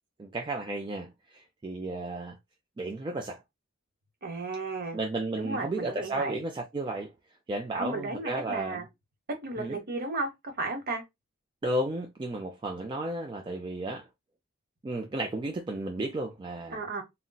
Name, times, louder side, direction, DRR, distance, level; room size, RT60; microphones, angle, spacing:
voice 1, 0.2-2.4 2.8-3.4 4.9-7.1 7.5-8.8 9.6-9.8 11.6-14.1 14.8-16.8, right 2 dB, 25° right, 0.4 m, -33 dB
voice 2, 4.2-5.0 5.4-6.4 7.7-8.9 9.4-11.0 16.7-17.0, right 3 dB, 45° right, 0.9 m, -34 dB
3.9 x 2.1 x 2.2 m
head